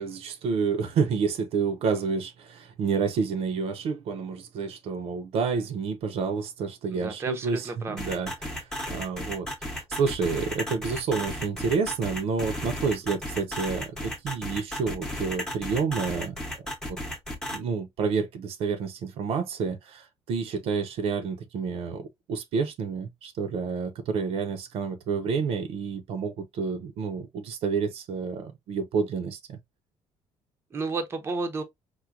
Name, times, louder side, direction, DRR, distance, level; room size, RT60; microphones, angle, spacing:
voice 1, 0.0-16.3 17.5-29.6, right 5 dB, 65° right, 0.6 m, -29 dB
voice 2, 6.9-8.0 30.7-31.6, right 3 dB, 20° right, 0.6 m, -32 dB
sound 1, 8.0-17.6, equal, 5° left, 0.8 m, -34 dB
4.4 x 2.1 x 2.4 m
cardioid pair, 155°, 11 cm